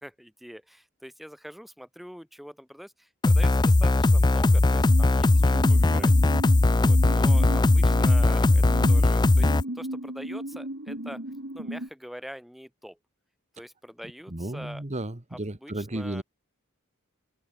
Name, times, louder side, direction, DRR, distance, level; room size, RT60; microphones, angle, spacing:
voice 1, 0.0-6.1 6.7-9.5 9.7-11.2 11.5-13.0 13.5-14.8 15.3-16.2, equal, ahead, 2.0 m, -44 dB
sound 1, 3.2-9.6, left 2 dB, 20° left, 0.4 m, -19 dB
sound 2, 4.7-11.9, right 1 dB, 55° right, 3.8 m, -36 dB
voice 2, 5.8-6.2 14.3-16.2, right 1 dB, 30° right, 1.5 m, -34 dB
head